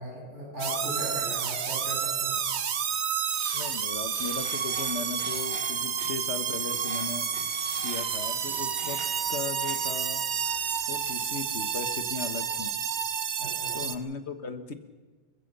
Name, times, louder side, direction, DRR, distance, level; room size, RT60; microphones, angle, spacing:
voice 1, 0.0-2.4 13.4-13.8, equal, 85° right, -6 dB, 7.7 m, -37 dB
sound 1, 0.6-14.0, right 7 dB, 70° right, 1.2 m, -30 dB
sound 2, 2.3-2.4 2.7-2.8 3.2-5.7 6.7-7.2 7.4-8.8, right 2 dB, 50° right, 2.7 m, -49 dB
voice 2, 3.5-7.3 7.8-9.0 9.3-10.3 10.9-12.7 13.7-14.7, left 4 dB, 70° left, 9 dB, 1.7 m, -37 dB
sound 3, 4.4-11.3, equal, 45° left, 4.9 m, -47 dB
27.0 x 15.0 x 6.8 m, 1.4 s
omnidirectional pair, 1.2 m